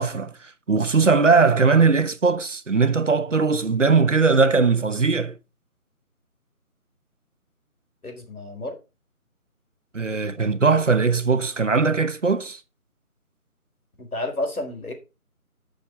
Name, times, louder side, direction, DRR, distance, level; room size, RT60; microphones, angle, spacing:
voice 1, 0.0-5.4 9.9-12.6, right 4 dB, 55° right, 1.0 m, -20 dB
voice 2, 8.0-8.7 14.0-14.9, left 2 dB, 75° left, 4.6 m, -30 dB
12.0 x 6.5 x 4.0 m
figure-of-eight pair, 160°, 45 cm